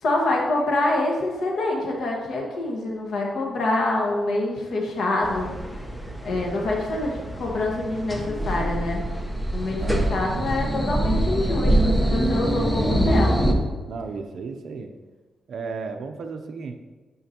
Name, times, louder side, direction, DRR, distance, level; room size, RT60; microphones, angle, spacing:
voice 1, 0.0-5.5 6.2-9.0 9.5-13.5, left 2 dB, 75° left, -1 dB, 1.5 m, -26 dB
sound 1, 5.2-13.5, right 1 dB, 5° left, 0.8 m, -24 dB
voice 2, 9.8-10.4 13.9-14.9 15.5-16.8, right 4 dB, 65° right, 6 dB, 0.5 m, -34 dB
9.2 x 6.0 x 2.9 m, 1.3 s
cardioid pair, 120°, 0 cm